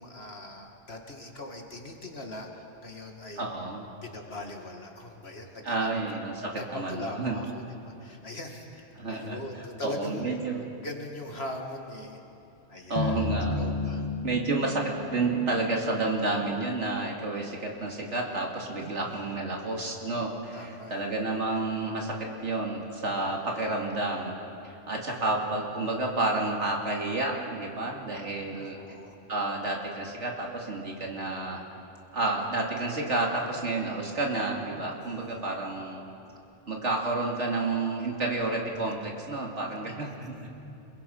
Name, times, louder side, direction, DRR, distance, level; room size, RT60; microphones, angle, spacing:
voice 1, 0.0-3.5 4.0-5.9 6.5-10.5 10.8-12.2 12.7-14.1 18.8-19.3 20.5-21.0 25.1-25.2 28.5-29.2 35.0-35.5 40.1-40.5, left 1 dB, 60° left, 2 dB, 2.6 m, -41 dB
voice 2, 3.4-3.9 5.6-7.4 9.0-10.7 12.9-13.6 14.2-24.4 24.6-28.8 29.3-31.6 32.1-36.1 36.7-40.5, right 2 dB, 85° right, 0 dB, 3.1 m, -30 dB
sound 1, 13.0-17.3, left 3 dB, 30° left, 1.6 m, -34 dB
29.5 x 22.0 x 5.5 m, 2.8 s
omnidirectional pair, 1.2 m